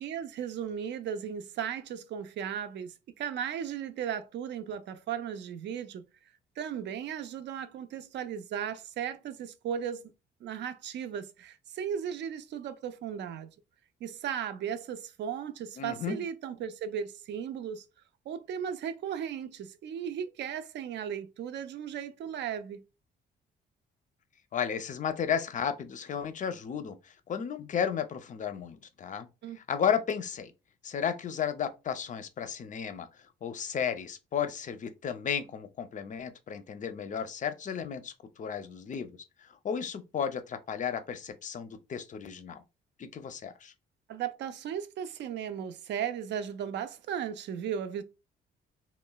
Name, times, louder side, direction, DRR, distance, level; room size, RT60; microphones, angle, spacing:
voice 1, 0.0-6.0 6.6-10.1 10.4-13.5 14.0-17.9 18.3-22.8 29.4-29.6 44.1-48.0, right 8 dB, 65° right, 0.4 m, -36 dB
voice 2, 15.8-16.2 24.5-29.3 29.6-30.5 30.8-33.1 33.4-39.1 39.4-42.6 43.0-43.7, left 7 dB, 40° left, 0.4 m, -33 dB
3.0 x 2.0 x 2.2 m
cardioid pair, 90°, 20 cm